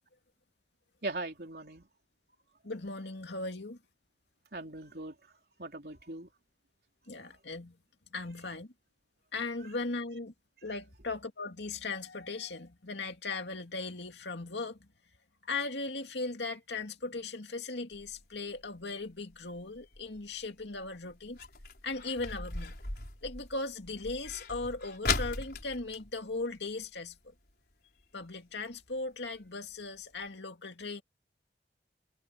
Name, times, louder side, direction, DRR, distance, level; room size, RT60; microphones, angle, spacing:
voice 1, 1.0-1.9 4.5-5.2 5.6-6.3, right 2 dB, 60° right, 3.7 m, -39 dB
voice 2, 2.6-3.8 7.1-7.7 8.1-8.7 9.3-10.3 10.6-14.8 15.5-21.4 21.8-22.7 23.2-27.1 28.1-31.0, left 3 dB, 80° left, 2.4 m, -38 dB
sound 1, 17.9-27.2 27.5-27.6 27.9-28.2 28.7-28.8 29.3-29.4 29.7-29.8 30.2-30.3, left 4 dB, 60° left, 4.7 m, -39 dB
head